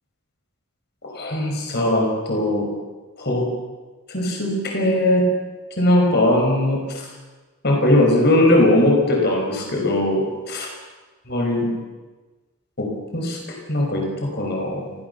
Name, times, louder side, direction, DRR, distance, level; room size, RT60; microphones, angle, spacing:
voice 1, 1.0-2.7 3.2-3.5 4.1-5.3 5.8-6.8 7.6-10.7 11.3-11.7 12.8-13.4 13.7-14.9, left 1 dB, 45° left, 1 dB, 5.8 m, -20 dB
30.0 x 15.5 x 7.1 m, 1.3 s
head